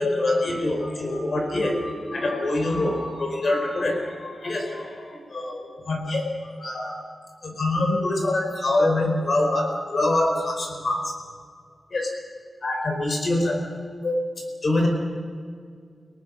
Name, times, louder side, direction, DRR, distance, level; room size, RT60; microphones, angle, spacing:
voice 1, 0.0-6.9 7.4-11.2 11.9-12.1 12.6-13.6 14.0-14.3 14.6-14.9, left 2 dB, 45° left, 3 dB, 4.5 m, -25 dB
30.0 x 19.0 x 6.3 m, 2.1 s
wide cardioid pair, 175°, 0 cm